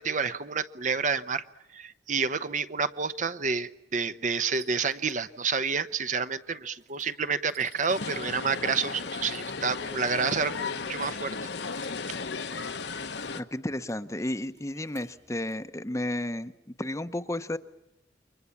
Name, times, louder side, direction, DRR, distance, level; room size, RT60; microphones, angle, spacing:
voice 1, 0.0-1.4 1.7-11.5, right 5 dB, 45° right, 12 dB, 0.9 m, -29 dB
sound 1, 4.5-15.5, right 9 dB, 80° right, 7.4 m, -59 dB
sound 2, 7.9-13.4, left 4 dB, 65° left, 1.2 m, -35 dB
voice 2, 13.3-16.5 16.8-17.6, left 1 dB, 15° left, 11 dB, 0.9 m, -32 dB
29.0 x 24.0 x 7.2 m, 0.91 s
head